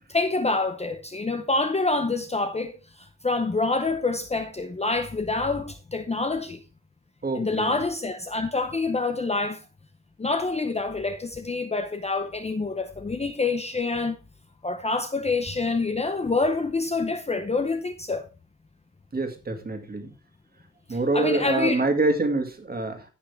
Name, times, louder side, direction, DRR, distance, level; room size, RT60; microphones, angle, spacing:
voice 1, 0.1-2.7 3.2-6.6 7.3-9.6 10.2-14.2 14.6-18.3 20.9-21.8, left 3 dB, 20° left, 0.7 m, -26 dB
voice 2, 7.2-7.8 19.1-20.1 20.9-23.1, right 2 dB, 30° right, 2.0 m, -26 dB
16.5 x 5.8 x 3.3 m
wide cardioid pair, 170°, 29 cm